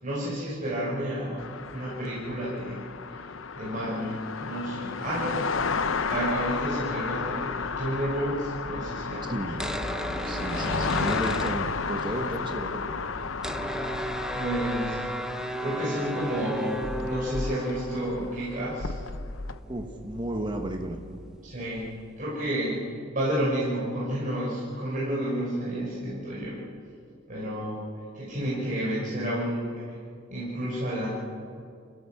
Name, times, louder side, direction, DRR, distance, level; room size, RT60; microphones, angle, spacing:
voice 1, 0.0-1.4 1.7-2.8 3.1-3.2 3.6-5.5 6.0-9.6 9.9-10.2 14.3-15.0 15.6-19.0 21.4-21.9 22.2-22.8 23.1-26.6 27.3-27.8 28.1-30.0 30.3-31.1, right 1 dB, 40° right, -7 dB, 5.6 m, -31 dB
sound 1, 1.4-19.6, left 5 dB, 85° left, 0.8 m, -33 dB
sound 2, 5.5-15.0, equal, 80° right, 2.9 m, -45 dB
sound 3, 9.4-12.2 12.5-12.6 12.7-22.2, right 1 dB, 5° right, 0.8 m, -36 dB
voice 2, 10.2-13.0 19.7-21.0, right 1 dB, 25° right, 3 dB, 1.4 m, -33 dB
28.0 x 16.5 x 7.2 m, 2.3 s
head